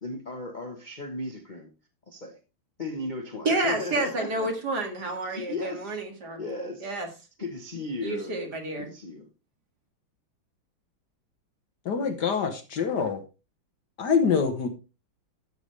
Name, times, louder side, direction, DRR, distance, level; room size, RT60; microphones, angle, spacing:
voice 1, 0.0-1.7 2.1-2.4 2.8-4.5 5.3-6.0 6.4-7.0 7.4-8.5 8.8-9.3, left 2 dB, 30° left, 1.0 m, -36 dB
voice 2, 3.4-6.4 6.8-7.1 8.0-8.9, right 2 dB, 50° right, 2.5 m, -29 dB
voice 3, 11.8-13.2 14.0-14.7, left 6 dB, 55° left, 1.6 m, -25 dB
13.5 x 7.0 x 3.3 m
omnidirectional pair, 2.3 m